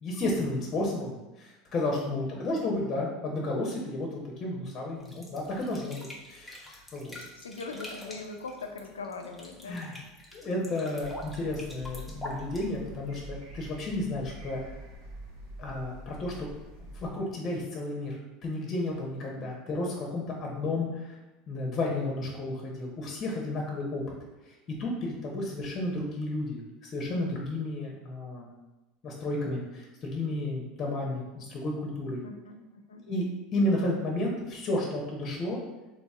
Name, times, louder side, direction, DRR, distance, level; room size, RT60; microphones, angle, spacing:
voice 1, 0.0-4.1 4.4-7.2 9.7-10.0 10.3-14.6 15.6-16.5 16.9-21.2 21.5-24.0 24.7-28.5 29.0-32.2 33.0-35.6, left 2 dB, 40° left, -1 dB, 0.8 m, -32 dB
voice 2, 2.3-2.6 7.1-9.8 19.4-19.7 32.2-33.0, left 3 dB, 90° left, 5 dB, 0.4 m, -42 dB
sound 1, 5.0-13.2, left 1 dB, ahead, 0.9 m, -45 dB
sound 2, 11.0-17.1, right 1 dB, 65° right, 1.1 m, -45 dB
4.0 x 3.0 x 2.3 m, 1.1 s
hypercardioid pair, 80°, 0 cm